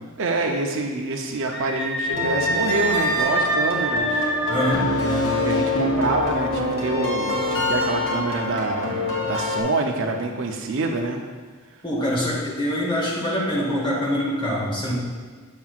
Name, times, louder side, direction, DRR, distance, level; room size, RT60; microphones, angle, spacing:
voice 1, 0.2-4.3 5.4-11.2, right 2 dB, 60° right, 3 dB, 0.6 m, -26 dB
Screaming, 1.5-4.8, right 1 dB, ahead, 1.1 m, -26 dB
sound 1, 2.1-9.6, left 2 dB, 65° left, 2.1 m, -25 dB
voice 2, 4.5-5.3 11.8-14.9, equal, 25° left, -5 dB, 1.7 m, -24 dB
7.4 x 7.2 x 2.4 m, 1.5 s
head